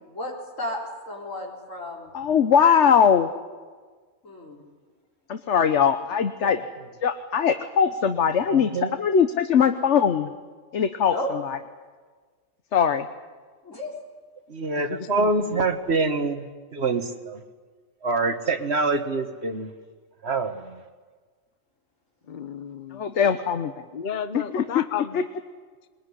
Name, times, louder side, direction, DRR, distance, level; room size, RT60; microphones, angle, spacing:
voice 1, 0.1-0.8 1.1-2.2 4.2-4.6 6.4-6.5 11.1-11.3 13.6-13.9 23.1-23.4, equal, 90° left, -1 dB, 4.5 m, -33 dB
voice 2, 2.1-3.3 5.3-6.6 7.0-8.7 9.0-10.3 10.7-11.2 11.4-11.6 12.7-13.1 22.9-23.7 24.3-24.8 25.1-25.2, left 7 dB, 65° left, 8 dB, 1.2 m, -21 dB
voice 3, 8.4-9.0 14.5-17.4 18.0-19.7 20.2-20.8, right 3 dB, 60° right, 8 dB, 1.7 m, -26 dB
voice 4, 14.8-15.7 22.3-23.0 23.9-25.3, left 7 dB, 40° left, 11 dB, 1.0 m, -34 dB
22.0 x 21.0 x 9.9 m, 1.5 s
omnidirectional pair, 1.3 m